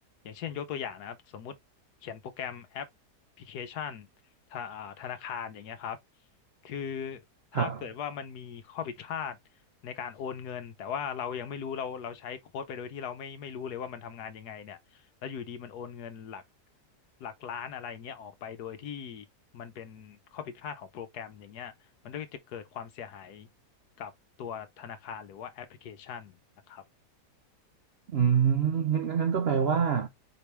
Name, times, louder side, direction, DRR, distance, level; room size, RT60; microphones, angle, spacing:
voice 1, 0.2-1.6 2.0-2.9 3.4-4.1 4.5-6.0 6.6-7.2 7.5-9.4 9.8-16.4 17.2-19.3 19.5-21.7 22.0-23.5 24.0-24.1 24.4-26.4 26.7-26.8, left 7 dB, 70° left, 1.2 m, -39 dB
voice 2, 28.1-30.1, right 7 dB, 70° right, 0.6 m, -25 dB
4.9 x 3.4 x 2.9 m
omnidirectional pair, 1.8 m